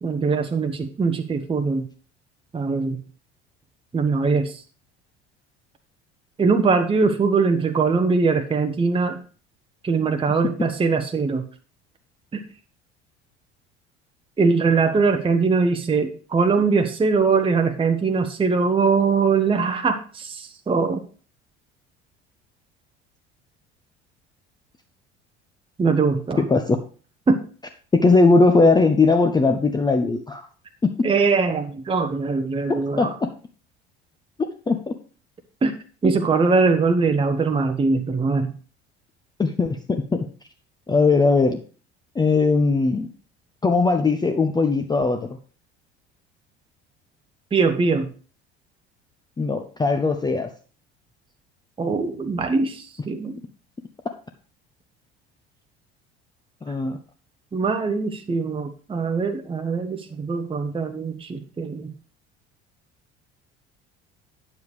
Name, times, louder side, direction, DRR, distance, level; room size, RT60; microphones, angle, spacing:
voice 1, 0.0-1.9 2.5-3.0 3.9-4.6 6.4-9.2 9.8-11.4 12.3-12.4 14.4-21.0 25.8-26.4 27.3-27.4 31.0-33.1 35.6-35.7 36.0-38.5 47.5-48.1 51.8-53.4 57.5-61.9, right 4 dB, 15° right, 6 dB, 0.8 m, -21 dB
voice 2, 26.4-26.8 27.9-30.5 30.8-31.1 33.0-33.3 34.4-34.9 39.4-40.3 40.9-41.6 42.2-43.1 43.6-45.3 49.4-50.5 56.6-57.0, left 3 dB, 15° left, 6 dB, 0.6 m, -19 dB
9.3 x 7.2 x 3.1 m, 0.38 s
figure-of-eight pair, 60°, 33 cm